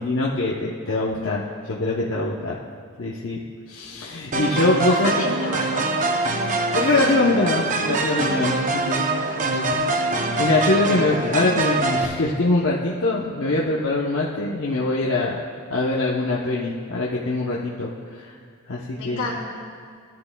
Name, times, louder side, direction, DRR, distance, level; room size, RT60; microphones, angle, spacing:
voice 1, 0.0-2.5 3.0-3.4 3.7-5.1 6.7-9.1 9.5-15.4 15.7-17.9 18.7-19.3, left 2 dB, 60° left, -4 dB, 0.8 m, -23 dB
sound 1, 4.3-12.1, right 3 dB, 35° right, 0.6 m, -24 dB
voice 2, 4.7-6.0 18.9-19.4, left 3 dB, 85° left, -2 dB, 2.4 m, -30 dB
16.5 x 10.5 x 2.3 m, 2.1 s
head